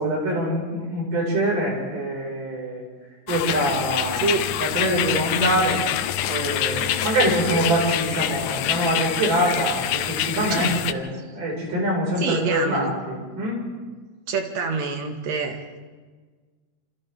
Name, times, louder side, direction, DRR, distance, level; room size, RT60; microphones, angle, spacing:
voice 1, 0.0-2.8 3.3-4.3 4.6-5.8 6.3-11.1 11.3-13.6, right 1 dB, 80° right, -1 dB, 7.1 m, -24 dB
sound 1, 3.3-10.9, left 12 dB, 90° left, 2.4 m, -26 dB
sound 2, 3.7-9.4, left 2 dB, 60° left, 3.8 m, -39 dB
voice 2, 12.2-12.9 14.3-15.8, right 4 dB, 55° right, 3 dB, 3.0 m, -26 dB
27.5 x 27.5 x 3.6 m, 1.4 s
omnidirectional pair, 3.8 m